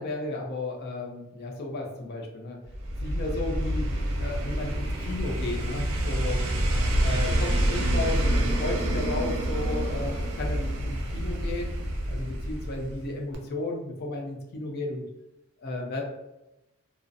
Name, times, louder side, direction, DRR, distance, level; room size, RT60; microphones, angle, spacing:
voice 1, 0.0-2.6 3.0-3.8 4.2-6.4 7.0-11.7 12.1-15.0 15.6-16.2, left 2 dB, 45° left, 1 dB, 0.5 m, -34 dB
sound 1, 2.7-13.1 13.3-13.4, right 1 dB, 80° right, 0.5 m, -27 dB
2.4 x 2.1 x 2.5 m, 0.93 s
head